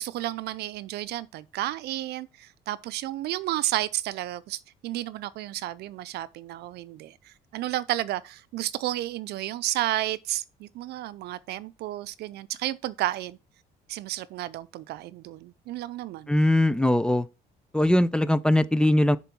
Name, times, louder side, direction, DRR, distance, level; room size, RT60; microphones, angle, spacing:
voice 1, 0.0-13.4 13.9-16.3, right 15 dB, 75° right, 0.6 m, -32 dB
voice 2, 16.3-17.3 17.7-19.2, left 1 dB, 5° left, 0.5 m, -21 dB
6.8 x 4.5 x 6.1 m
cardioid pair, 110°, 17 cm